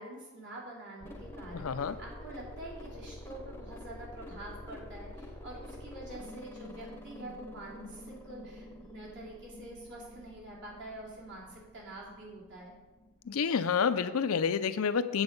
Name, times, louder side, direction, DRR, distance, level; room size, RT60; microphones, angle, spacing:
voice 1, 0.0-12.7, right 1 dB, 55° right, -4 dB, 3.0 m, -46 dB
sound 1, 1.0-14.3, left 1 dB, 10° left, 0.8 m, -47 dB
voice 2, 1.6-2.0 13.3-15.2, left 6 dB, 70° left, 12 dB, 0.5 m, -29 dB
8.9 x 7.5 x 5.3 m, 1.2 s
head